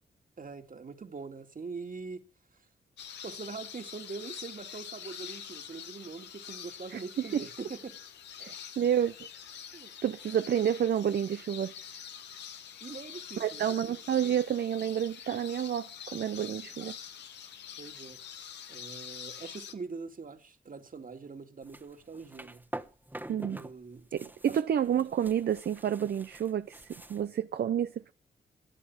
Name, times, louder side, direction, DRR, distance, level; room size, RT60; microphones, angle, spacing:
voice 1, 0.4-2.2 3.2-8.0 9.7-9.9 12.8-13.9 17.8-18.2 18.7-22.6 23.5-24.1 24.5-24.6, right 4 dB, 50° right, 2.4 m, -43 dB
sound 1, 3.0-19.7, left 8 dB, 90° left, 1.2 m, -45 dB
voice 2, 6.9-7.4 8.4-9.1 10.0-11.7 13.4-17.0 23.3-23.6 24.1-28.1, right 9 dB, 70° right, 0.6 m, -30 dB
sound 2, 21.6-23.7 24.0-27.3, right 1 dB, 10° right, 1.3 m, -45 dB
14.0 x 9.8 x 7.3 m
supercardioid pair, 45°, 18 cm